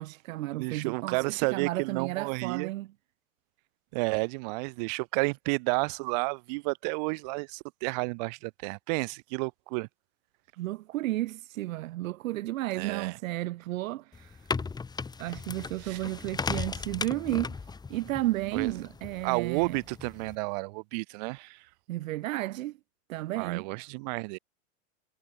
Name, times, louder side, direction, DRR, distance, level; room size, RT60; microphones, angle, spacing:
voice 1, 0.0-2.9 10.6-14.5 15.2-17.6 17.9-19.8 21.9-22.8 23.1-23.7, right 16 dB, 85° right, 0.5 m, -33 dB
voice 2, 0.5-2.7 3.9-9.9 12.8-13.1 15.8-16.0 18.5-18.7 19.2-21.6 23.4-24.4, right 30 dB, 35° right, 0.4 m, -31 dB
sound 1, 14.1-20.3, left 4 dB, 10° left, 1.5 m, -37 dB
hypercardioid pair, 135°, 40 cm